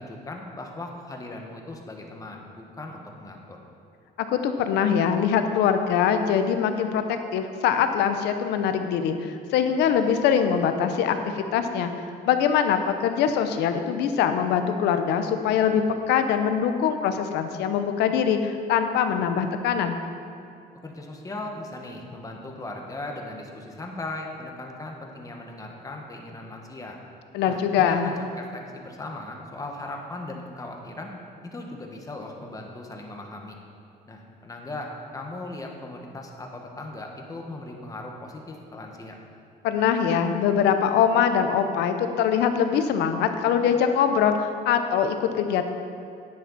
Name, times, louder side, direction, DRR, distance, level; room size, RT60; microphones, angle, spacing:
voice 1, 0.0-3.6 20.8-27.0 27.5-31.1 31.4-33.6 34.1-39.2, left 2 dB, 20° left, 1 dB, 1.5 m, -38 dB
voice 2, 4.3-11.9 12.2-20.0 27.3-28.1 39.6-45.7, left 8 dB, 85° left, 8 dB, 0.8 m, -23 dB
10.0 x 10.0 x 4.2 m, 2.5 s
cardioid pair, 110°, 17 cm